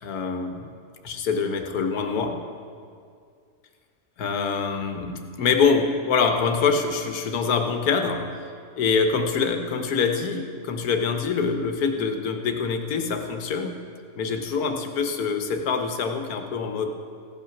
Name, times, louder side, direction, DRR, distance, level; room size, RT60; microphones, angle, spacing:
voice 1, 0.0-0.7 1.0-2.4 4.2-8.3 8.7-13.8 14.2-16.9, left 5 dB, 80° left, 5 dB, 1.4 m, -25 dB
15.5 x 5.8 x 5.9 m, 2.2 s
omnidirectional pair, 1.6 m